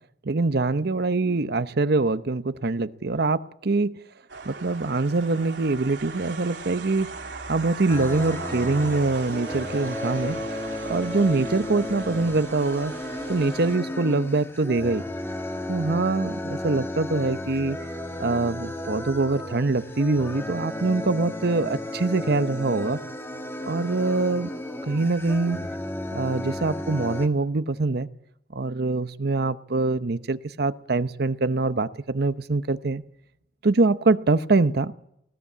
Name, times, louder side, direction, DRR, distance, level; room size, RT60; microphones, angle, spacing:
voice 1, 0.2-4.0 4.5-7.1 7.5-10.4 10.9-12.9 13.3-15.0 15.7-17.8 18.2-23.0 23.7-24.5 24.8-25.6 26.1-28.1 28.5-33.0 33.6-34.9, right 3 dB, 65° right, 13 dB, 0.8 m, -24 dB
sound 1, 4.3-13.8, right 4 dB, 90° right, 3.1 m, -39 dB
sound 2, 7.9-27.3, left 1 dB, 15° left, 1.4 m, -34 dB
19.5 x 17.5 x 8.5 m, 0.76 s
head